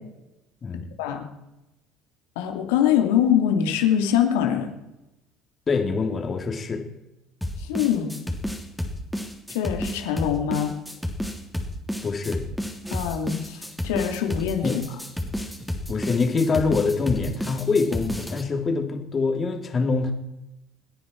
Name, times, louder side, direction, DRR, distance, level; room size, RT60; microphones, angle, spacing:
voice 1, 2.4-4.7 7.6-8.1 9.5-10.7 12.9-14.8, left 9 dB, 75° left, 4 dB, 2.5 m, -23 dB
voice 2, 5.7-6.8 12.0-12.4 14.6-14.8 15.9-20.1, left 4 dB, 35° left, 4 dB, 3.1 m, -24 dB
sound 1, 7.4-18.4, left 1 dB, ahead, 3.4 m, -31 dB
28.5 x 9.9 x 4.7 m, 0.94 s
hypercardioid pair, 65°, 0 cm